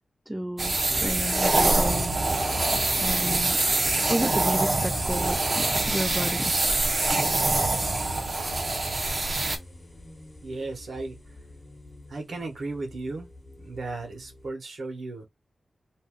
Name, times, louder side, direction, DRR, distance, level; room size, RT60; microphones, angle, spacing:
voice 1, 0.3-2.2 3.0-3.6 4.1-6.5 7.1-7.2, right 1 dB, 10° right, 0.3 m, -31 dB
sound 1, 0.6-9.6, right 2 dB, 45° right, 0.7 m, -25 dB
sound 2, 0.9-14.5, left 1 dB, 20° left, 1.0 m, -43 dB
voice 2, 10.4-11.1 12.1-13.3 13.6-15.3, right 3 dB, 70° right, 1.1 m, -35 dB
2.6 x 2.3 x 3.5 m
cardioid pair, 65°, 0 cm